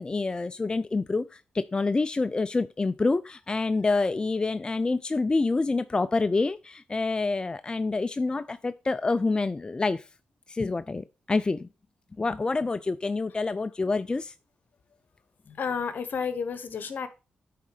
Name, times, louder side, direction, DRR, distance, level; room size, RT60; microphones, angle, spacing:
voice 1, 0.0-10.1 10.5-11.7 12.2-14.3, left 3 dB, 25° left, 0.4 m, -27 dB
voice 2, 15.5-17.1, left 6 dB, 65° left, 1.2 m, -31 dB
9.4 x 3.8 x 4.9 m
cardioid pair, 75°, 3 cm